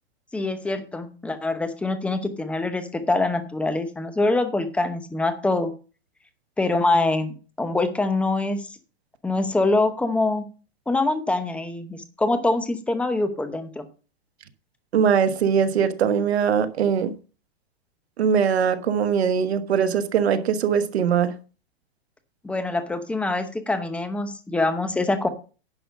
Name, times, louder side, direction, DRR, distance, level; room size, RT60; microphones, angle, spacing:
voice 1, 0.3-5.7 6.6-8.7 9.2-10.4 10.9-13.8 22.4-25.3, left 2 dB, 5° left, 0.8 m, -24 dB
voice 2, 14.9-17.1 18.2-21.3, right 7 dB, 85° right, 1.3 m, -21 dB
10.5 x 6.3 x 5.2 m
hypercardioid pair, 150°, 31 cm